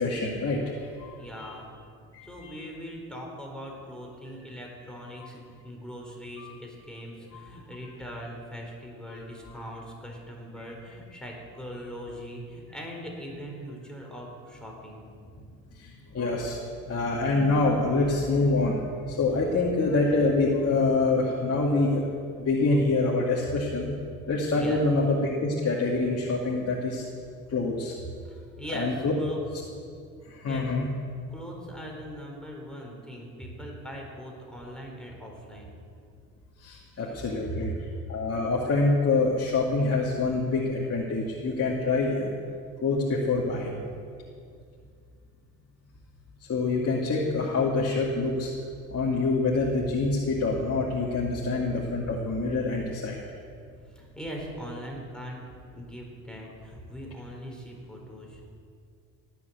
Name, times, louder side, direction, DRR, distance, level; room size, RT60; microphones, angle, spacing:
voice 1, 0.0-1.1 1.4-1.5 2.1-2.6 6.4-6.5 7.3-7.4 15.8-16.6 16.9-23.9 24.3-27.0 27.5-28.0 28.7-29.1 30.3-30.9 36.6-37.7 38.1-42.3 42.8-43.8 46.5-48.5 48.9-53.2, left 3 dB, 35° left, -3 dB, 2.2 m, -26 dB
voice 2, 1.2-1.7 2.2-15.0 24.5-24.8 28.2-29.4 30.5-30.7 31.3-35.7 36.9-37.1 37.5-37.7 53.9-55.4 55.7-58.4, equal, ahead, -1 dB, 4.3 m, -40 dB
18.0 x 7.2 x 8.3 m, 2.3 s
hypercardioid pair, 60°, 39 cm